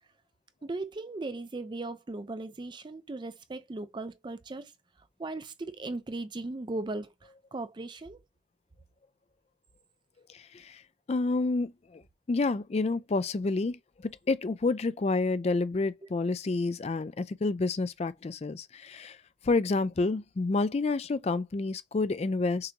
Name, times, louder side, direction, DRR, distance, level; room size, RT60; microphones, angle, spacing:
voice 1, 0.6-4.7 5.2-8.2, right 2 dB, 25° right, 0.4 m, -37 dB
voice 2, 10.3-10.8 11.1-12.0 12.3-19.2 19.4-22.7, left 3 dB, 35° left, 0.4 m, -29 dB
6.6 x 2.6 x 2.9 m
head